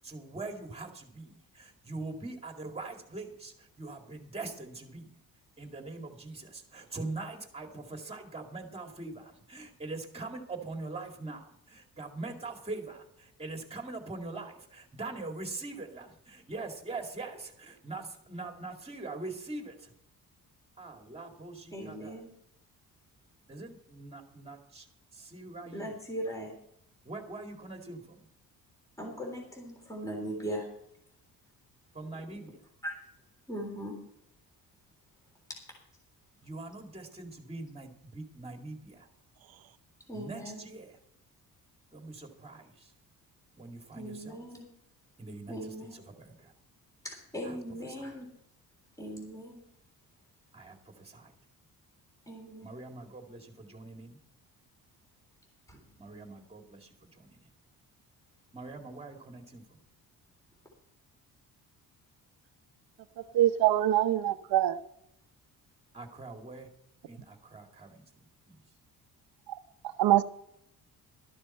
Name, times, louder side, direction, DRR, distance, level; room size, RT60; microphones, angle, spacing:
voice 1, 0.0-5.1 5.6-19.9 20.8-22.2 23.5-24.9 25.1-26.0 27.1-28.2 31.9-32.6 36.4-39.1 40.1-41.0 41.9-42.9 43.5-44.4 45.2-46.5 47.4-48.2 50.5-51.3 52.6-54.2 56.0-57.5 58.5-59.8 65.9-66.7 67.1-68.6, right 3 dB, 15° right, 2.3 m, -43 dB
voice 2, 21.7-22.3 25.7-26.5 29.0-30.7 32.8-32.9 33.5-34.0 40.1-40.6 43.9-44.7 45.5-46.0 47.0-48.3 49.0-49.6 52.3-52.7 55.7-55.8, equal, 10° left, 3.6 m, -39 dB
voice 3, 63.3-64.8 69.5-69.6 70.0-70.2, right 13 dB, 85° right, 0.8 m, -24 dB
13.0 x 12.5 x 4.3 m
cardioid pair, 145°, 35 cm